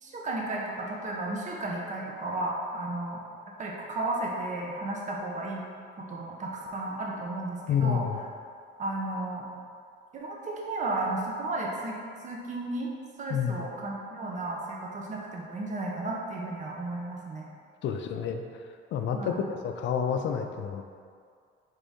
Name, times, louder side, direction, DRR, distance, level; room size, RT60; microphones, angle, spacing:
voice 1, 0.0-3.2 3.6-5.6 6.0-8.0 8.8-9.5 10.1-12.0 12.2-12.9 13.2-17.5 19.1-19.4, right 2 dB, 35° right, -2 dB, 0.7 m, -33 dB
voice 2, 7.7-8.2 13.3-13.7 17.8-18.4 18.9-20.8, left 7 dB, 65° left, 5 dB, 0.4 m, -29 dB
4.0 x 3.7 x 3.5 m, 2.2 s
cardioid pair, 130°, 21 cm